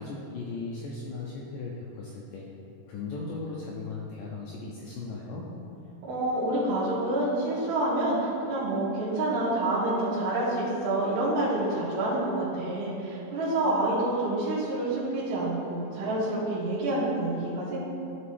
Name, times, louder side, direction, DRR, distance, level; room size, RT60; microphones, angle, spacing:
voice 1, 0.0-2.4 2.9-5.5, left 3 dB, 85° left, -3 dB, 1.9 m, -37 dB
voice 2, 6.0-17.8, right 1 dB, 70° right, -12 dB, 3.3 m, -28 dB
11.0 x 5.1 x 3.3 m, 2.7 s
omnidirectional pair, 4.7 m